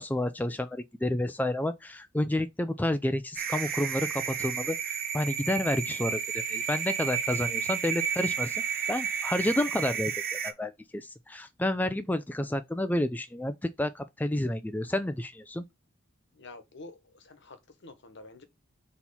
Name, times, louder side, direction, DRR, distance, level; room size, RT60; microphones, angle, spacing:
voice 1, 0.0-8.6 8.9-15.6, left 1 dB, 10° left, 0.4 m, -30 dB
sound 1, 3.4-10.5, right 7 dB, 45° right, 0.9 m, -32 dB
voice 2, 16.4-17.6 17.8-18.4, left 2 dB, 60° left, 1.2 m, -48 dB
4.5 x 4.2 x 5.6 m
head